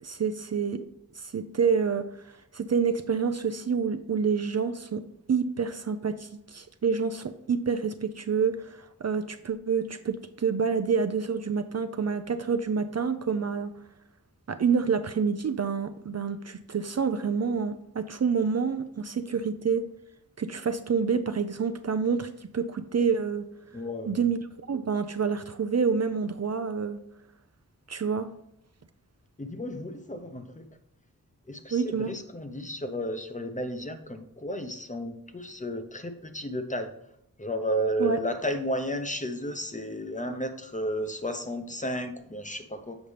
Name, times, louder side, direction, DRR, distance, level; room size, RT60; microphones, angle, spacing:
voice 1, 0.0-0.8 1.2-5.0 5.3-13.7 14.5-19.8 20.4-23.5 24.1-24.4 24.7-27.0 27.9-28.3 31.7-32.1 38.0-38.2, right 6 dB, 45° right, 10 dB, 0.5 m, -28 dB
voice 2, 23.7-24.2 29.4-30.6 31.5-36.9 37.4-43.0, equal, 20° left, 7 dB, 0.8 m, -33 dB
7.2 x 5.2 x 3.3 m, 0.77 s
wide cardioid pair, 50°, 36 cm